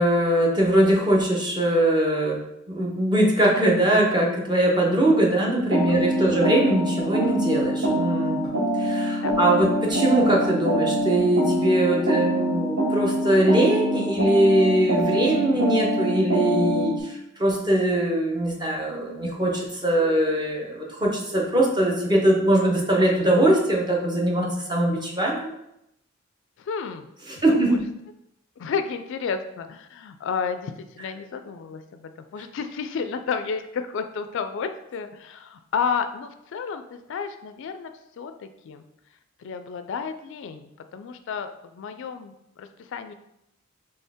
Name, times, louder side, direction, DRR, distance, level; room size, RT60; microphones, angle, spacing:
voice 1, 0.0-25.5 27.3-27.9, right 1 dB, 20° right, -2 dB, 0.8 m, -22 dB
sound 1, 5.7-17.0, equal, 65° right, 0.9 m, -25 dB
voice 2, 5.9-6.4 9.2-9.3 26.6-27.1 27.5-27.8 28.6-38.8 39.4-43.1, left 6 dB, 65° left, 9 dB, 0.3 m, -32 dB
sound 2, 6.4-6.7 7.0-7.3 7.6-7.9 8.2-8.5 8.8-8.9 9.3-9.9 10.2-11.2, right 1 dB, 50° right, 1.7 m, -41 dB
4.3 x 3.3 x 3.5 m, 0.83 s
head